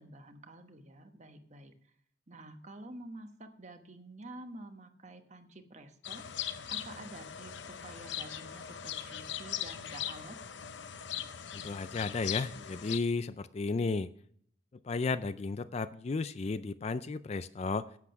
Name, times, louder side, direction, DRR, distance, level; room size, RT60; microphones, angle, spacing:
voice 1, 0.0-1.7 2.3-6.3 6.7-10.4, right 1 dB, 35° right, 7 dB, 1.2 m, -49 dB
sound 1, 6.0-13.0, left 10 dB, 65° left, 0.7 m, -40 dB
voice 2, 11.5-14.1 14.8-17.9, left 4 dB, 35° left, 14 dB, 0.4 m, -33 dB
10.5 x 8.4 x 5.8 m, 0.62 s
head